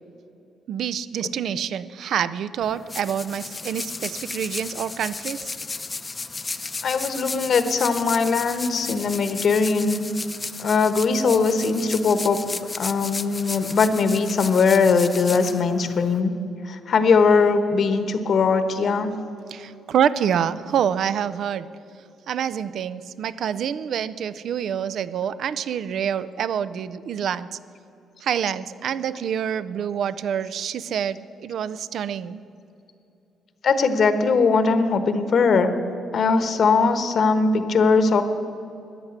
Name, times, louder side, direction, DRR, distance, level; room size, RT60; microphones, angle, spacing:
voice 1, 0.7-5.5 19.5-21.7 22.3-27.5 28.2-32.4, right 8 dB, 65° right, 16 dB, 0.5 m, -26 dB
sound 1, 2.6-16.2, left 3 dB, 25° left, 0.6 m, -34 dB
voice 2, 6.8-10.0 10.6-12.4 12.8-16.3 16.7-19.1 33.6-35.7 36.1-38.2, left 4 dB, 55° left, 10 dB, 1.2 m, -20 dB
14.0 x 9.9 x 8.1 m, 2.8 s
cardioid pair, 90°, 0 cm